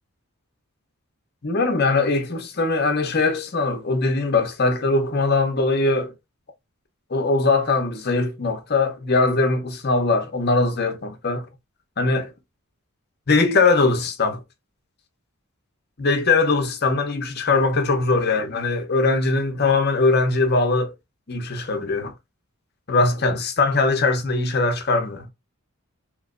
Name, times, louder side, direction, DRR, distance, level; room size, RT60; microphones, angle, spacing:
voice 1, 1.4-6.1 7.1-11.5 12.0-12.3 13.3-14.4 16.0-20.9 21.3-22.1 22.9-25.3, left 3 dB, 45° left, 0.7 m, -21 dB
3.1 x 2.9 x 2.4 m
head